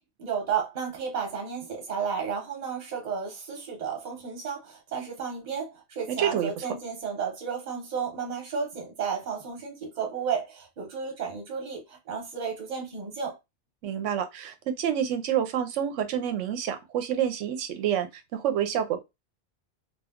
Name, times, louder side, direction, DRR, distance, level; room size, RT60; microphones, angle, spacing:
voice 1, 0.2-13.4, right 6 dB, 40° right, 0.9 m, -33 dB
voice 2, 6.1-6.7 13.8-19.0, right 9 dB, 85° right, 0.9 m, -28 dB
2.3 x 2.3 x 3.5 m
omnidirectional pair, 1.2 m